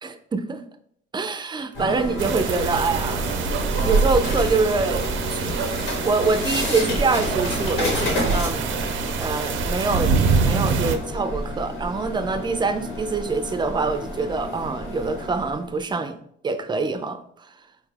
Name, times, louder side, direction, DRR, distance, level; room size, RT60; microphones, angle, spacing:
voice 1, 0.0-0.6 1.1-3.2 3.8-5.7 6.0-8.7 9.2-16.2 16.4-17.5, right 4 dB, 25° right, 0.4 m, -25 dB
sound 1, 1.7-15.7, left 1 dB, 80° left, 1.3 m, -30 dB
sound 2, 2.2-11.0, right 5 dB, 80° right, 0.4 m, -25 dB
4.3 x 2.3 x 3.2 m
cardioid pair, 90°, 20 cm